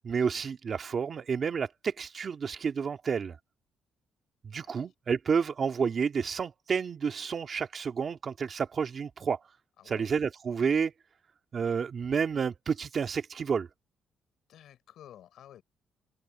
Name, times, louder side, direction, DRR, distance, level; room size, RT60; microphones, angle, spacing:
voice 1, 0.0-3.4 4.4-9.4 9.9-10.9 11.5-13.7, right 6 dB, 45° right, 2.2 m, -30 dB
voice 2, 14.5-15.6, left 11 dB, 75° left, 6.4 m, -52 dB
cardioid pair, 105°, 0 cm